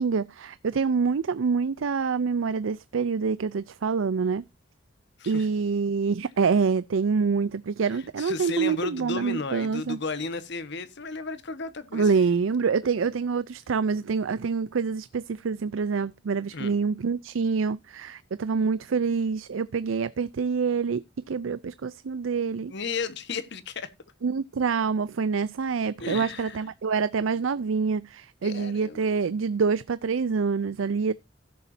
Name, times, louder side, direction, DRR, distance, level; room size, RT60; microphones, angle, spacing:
voice 1, 0.0-4.4 5.3-10.0 11.9-22.7 24.2-31.1, right 5 dB, 80° right, 0.5 m, -26 dB
voice 2, 7.9-12.1 16.5-16.7 22.7-23.9 26.0-26.6 28.4-29.1, left 4 dB, 60° left, 1.3 m, -34 dB
16.0 x 7.1 x 2.7 m
head